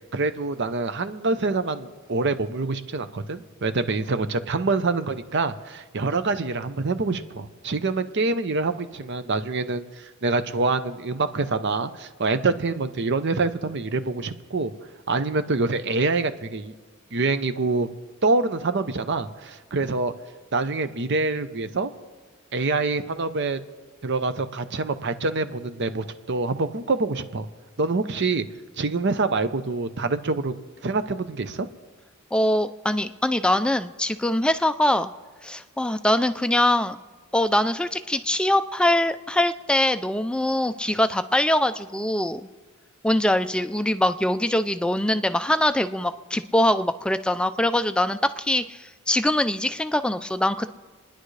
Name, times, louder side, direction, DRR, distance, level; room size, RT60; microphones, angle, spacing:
voice 1, 0.1-14.7 15.1-16.7 17.1-17.9 18.2-20.1 20.5-21.9 22.5-23.6 24.0-27.5 27.8-28.5 28.8-30.5 30.8-31.7, right 3 dB, 55° right, 11 dB, 0.7 m, -26 dB
voice 2, 32.3-35.1 35.4-37.0 37.3-42.4 43.0-50.7, left 1 dB, 5° left, 11 dB, 0.3 m, -23 dB
29.5 x 10.0 x 3.3 m, 1.4 s
head